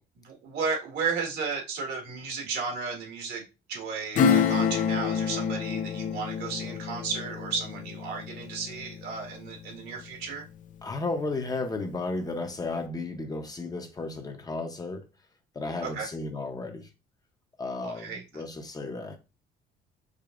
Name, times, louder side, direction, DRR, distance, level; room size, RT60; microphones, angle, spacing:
voice 1, 0.2-10.5 15.8-16.1 17.8-18.4, right 5 dB, 80° right, 1.7 m, -34 dB
Acoustic guitar / Strum, 4.1-10.4 10.7-10.8, left 7 dB, 50° left, 0.4 m, -28 dB
voice 2, 10.8-15.1 15.5-16.9 17.6-19.2, left 3 dB, 20° left, 0.7 m, -33 dB
4.9 x 2.7 x 2.5 m
cardioid pair, 110°, 17 cm